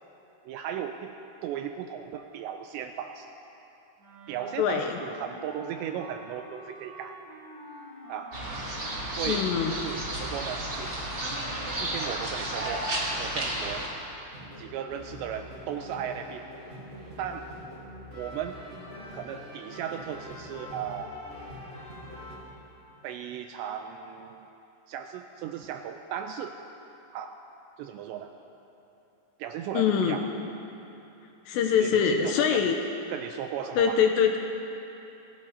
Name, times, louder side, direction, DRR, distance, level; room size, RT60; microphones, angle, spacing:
voice 1, 0.5-1.1 1.4-3.3 4.3-7.2 8.1-8.3 9.1-10.9 11.8-13.9 14.6-16.5 17.2-17.5 18.1-18.6 19.1-21.1 23.0-24.5 24.9-26.6 27.1-27.4 27.8-28.3 29.4-30.3 31.8-32.7 33.1-34.0, right 9 dB, 85° right, 5 dB, 2.6 m, -36 dB
Wind instrument woodwind instrument, 4.0-9.2, right 1 dB, 65° right, 6.9 m, -47 dB
voice 2, 4.6-5.0 9.3-9.8 29.7-30.2 31.5-32.8 33.8-34.4, left 7 dB, 80° left, 4 dB, 2.7 m, -24 dB
sound 1, 8.3-13.9, right 1 dB, 35° right, 1.9 m, -32 dB
sound 2, 14.3-22.4, equal, 15° right, 4.4 m, -44 dB
28.0 x 16.5 x 2.8 m, 3.0 s
omnidirectional pair, 5.5 m